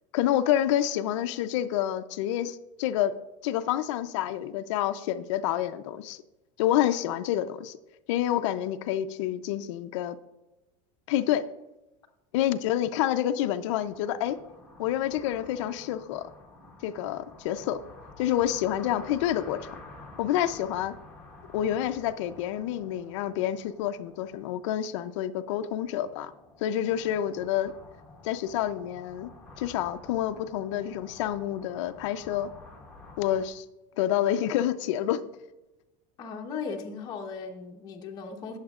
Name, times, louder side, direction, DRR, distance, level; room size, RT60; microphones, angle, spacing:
voice 1, 0.1-3.1 3.4-6.2 6.6-7.8 8.1-10.2 11.1-11.4 12.3-14.4 14.8-16.3 16.8-17.8 18.2-19.6 20.2-21.0 21.5-26.3 26.6-27.7 28.2-29.3 29.6-32.5 33.2-33.6 34.0-35.2, left 11 dB, 60° left, 10 dB, 0.6 m, -28 dB
sound 1, 13.8-33.5, left 2 dB, 5° left, 1.3 m, -50 dB
voice 2, 36.2-38.6, left 5 dB, 25° left, 1 dB, 1.0 m, -37 dB
19.0 x 7.3 x 2.4 m, 0.99 s
supercardioid pair, 175°, 17 cm